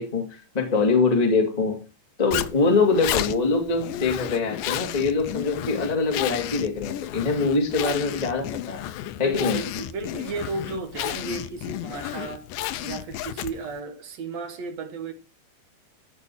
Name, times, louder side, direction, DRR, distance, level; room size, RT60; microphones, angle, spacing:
voice 1, 0.0-1.8 2.2-8.9 9.2-9.6, left 4 dB, 15° left, 1.7 m, -23 dB
Zipper (clothing), 2.3-13.8, left 13 dB, 75° left, 2.2 m, -32 dB
voice 2, 9.2-12.5 12.8-15.1, right 4 dB, 60° right, 1.9 m, -34 dB
13.5 x 5.3 x 7.7 m
omnidirectional pair, 4.3 m